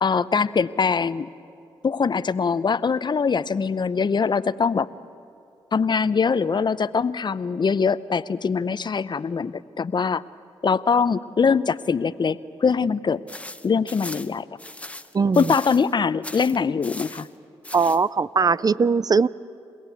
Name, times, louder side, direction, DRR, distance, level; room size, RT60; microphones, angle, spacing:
voice 1, 0.0-1.3 1.8-4.9 5.7-10.2 10.6-13.2 13.6-14.5 15.4-17.3, left 5 dB, 45° left, 16 dB, 0.7 m, -22 dB
sound 1, 13.3-15.9 16.2-17.3 17.6-18.0, left 1 dB, 10° left, 1.1 m, -38 dB
voice 2, 15.1-15.5 17.7-19.3, right 5 dB, 35° right, 19 dB, 0.5 m, -20 dB
29.0 x 17.0 x 8.4 m, 2.5 s
supercardioid pair, 45°, 11 cm